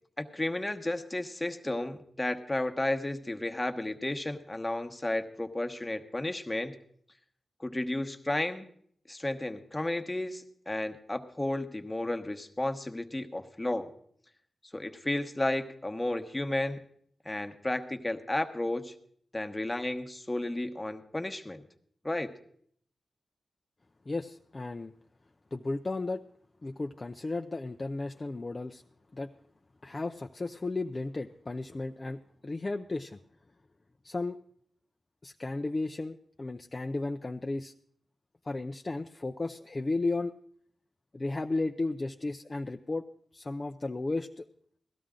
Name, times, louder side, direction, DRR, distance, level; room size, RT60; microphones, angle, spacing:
voice 1, 0.2-6.8 7.6-8.7 9.1-13.9 14.7-16.8 17.2-18.9 19.3-21.6 22.0-22.3, left 1 dB, 20° left, 6 dB, 1.1 m, -33 dB
voice 2, 24.1-24.9 25.5-26.2 26.6-28.8 29.1-29.3 29.8-33.2 34.0-34.4 35.2-37.7 38.5-40.3 41.1-43.0 43.3-44.5, left 2 dB, 35° left, 5 dB, 0.5 m, -34 dB
17.0 x 12.5 x 3.8 m, 0.63 s
cardioid pair, 55°, 0 cm